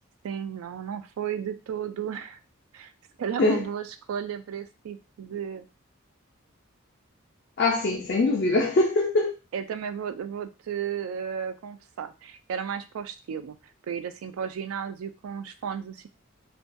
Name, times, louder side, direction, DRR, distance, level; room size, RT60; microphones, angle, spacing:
voice 1, 0.2-2.4 2.7-2.9 3.2-5.7 9.5-13.6 13.9-16.1, right 8 dB, 80° right, 0.3 m, -34 dB
voice 2, 7.6-9.4, left 2 dB, 45° left, 0.3 m, -23 dB
2.2 x 2.2 x 2.6 m
head